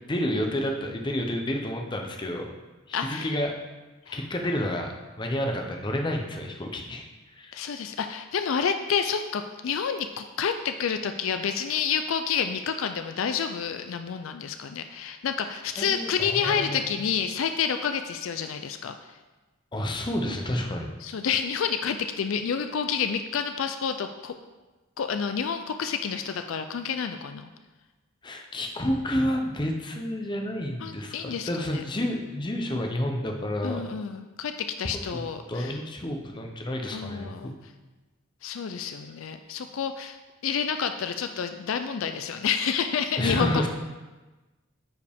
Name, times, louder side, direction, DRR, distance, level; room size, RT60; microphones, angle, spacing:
voice 1, 0.1-2.6 2.9-3.5 4.1-4.9 5.2-7.0 7.3-7.6 15.8-16.9 19.7-20.9 28.2-33.8 35.1-37.6 43.2-43.7, left 1 dB, 20° left, 2 dB, 0.7 m, -30 dB
voice 2, 2.9-3.3 4.1-4.2 7.5-19.0 21.0-24.3 25.0-27.5 30.8-31.8 33.6-35.8 36.9-37.5 38.4-40.2 40.4-43.7, left 7 dB, 65° left, 8 dB, 0.4 m, -29 dB
9.2 x 4.9 x 3.5 m, 1.2 s
head